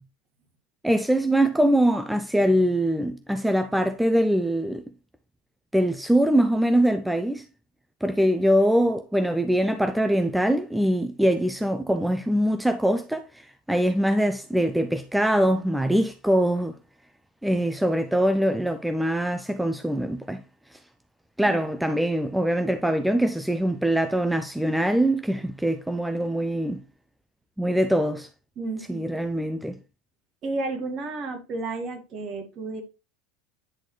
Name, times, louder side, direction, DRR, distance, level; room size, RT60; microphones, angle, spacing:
voice 1, 0.8-4.8 5.7-7.4 8.0-16.8 17.4-20.4 21.4-26.8 27.6-28.3 28.9-29.8, right 1 dB, 5° right, 0.6 m, -23 dB
voice 2, 28.6-29.0 30.4-32.8, right 3 dB, 45° right, 2.0 m, -32 dB
9.9 x 4.1 x 3.1 m
hypercardioid pair, 80°, 0 cm